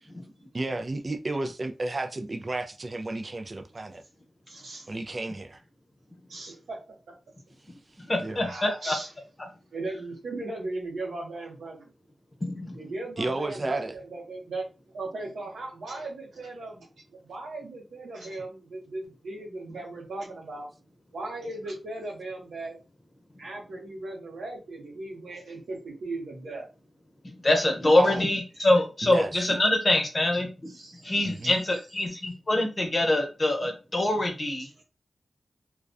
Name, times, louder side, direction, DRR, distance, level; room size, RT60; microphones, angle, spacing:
voice 1, 0.5-4.0 4.9-5.6 8.2-8.4 13.2-13.9 28.0-28.2 29.0-29.4 31.2-31.6, right 2 dB, 45° right, 0.4 m, -32 dB
voice 2, 4.5-4.9 6.3-6.8 8.2-9.1 9.7-11.9 12.7-16.9 17.2-20.7 21.1-22.8 23.4-26.7 28.0-28.1 28.6-28.7 30.7-31.5 34.6-34.8, right 2 dB, 90° right, 0.8 m, -38 dB
voice 3, 8.0-9.0 12.4-12.8 27.2-30.7 31.0-34.7, left 1 dB, 45° left, 0.8 m, -25 dB
2.3 x 2.2 x 2.5 m
cardioid pair, 50°, 0 cm